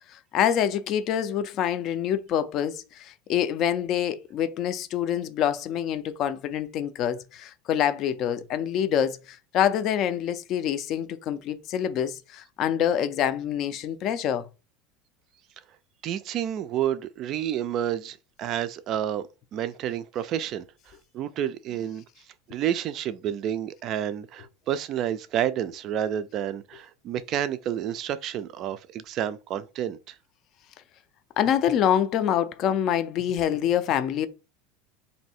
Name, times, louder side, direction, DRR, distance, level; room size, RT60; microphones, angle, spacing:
voice 1, 0.1-14.5 31.4-34.3, left 9 dB, 35° left, 0.4 m, -26 dB
voice 2, 16.0-19.2 19.5-20.7 21.1-22.0 22.5-30.1, right 10 dB, 35° right, 0.3 m, -29 dB
3.2 x 2.7 x 4.2 m
supercardioid pair, 165°, 0 cm